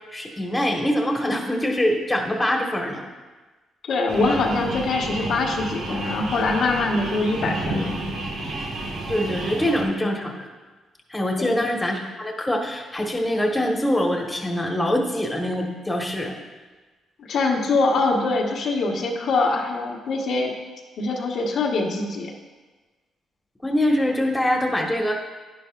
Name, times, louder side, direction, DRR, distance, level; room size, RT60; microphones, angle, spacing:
voice 1, 0.0-3.0 9.1-10.5 11.1-16.3 23.6-25.2, left 1 dB, 10° left, 1 dB, 1.5 m, -24 dB
voice 2, 3.8-7.9 11.4-11.6 17.3-20.5 21.0-22.3, left 3 dB, 70° left, -1 dB, 1.3 m, -23 dB
sound 1, 4.1-9.8, right 2 dB, 80° right, 1.7 m, -31 dB
11.0 x 10.0 x 2.5 m, 1.3 s
cardioid pair, 90°, 0 cm